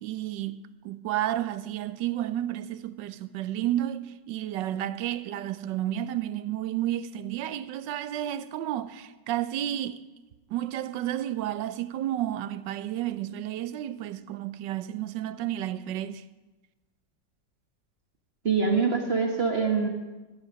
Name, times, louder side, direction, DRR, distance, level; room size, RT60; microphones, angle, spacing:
voice 1, 0.0-10.0 10.5-16.2, right 12 dB, 90° right, 1.3 m, -31 dB
voice 2, 18.4-19.9, right 5 dB, 35° right, 1.5 m, -24 dB
16.5 x 13.0 x 5.2 m
omnidirectional pair, 1.9 m